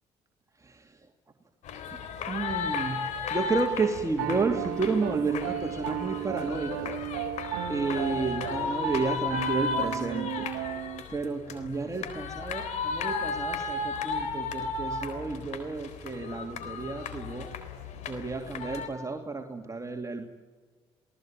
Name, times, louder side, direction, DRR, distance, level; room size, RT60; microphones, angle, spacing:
voice 1, 0.6-1.1 1.9-2.0 2.3-7.0 7.7-10.5 11.1-17.5 18.1-20.2, right 4 dB, 25° right, 3 dB, 2.7 m, -32 dB
sound 1, 1.7-18.9, left 5 dB, 70° left, 3.8 m, -34 dB
Piano, 4.2-11.0, right 13 dB, 85° right, 1.2 m, -34 dB
29.0 x 19.0 x 9.1 m, 1.4 s
hypercardioid pair, 55°, 13 cm